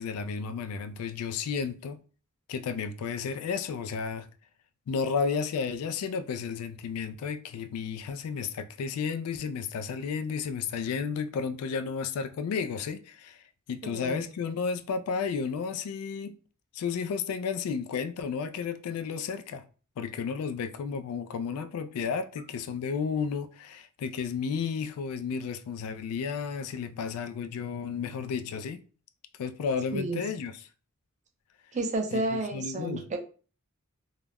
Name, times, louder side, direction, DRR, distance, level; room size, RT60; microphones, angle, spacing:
voice 1, 0.0-2.0 2.5-4.3 4.9-16.4 16.7-19.6 20.0-28.8 29.4-30.5 32.1-33.0, left 6 dB, 80° left, 0.3 m, -32 dB
voice 2, 13.8-14.3 29.9-30.2 31.7-33.2, right 2 dB, 35° right, 0.5 m, -31 dB
2.3 x 2.0 x 3.3 m
head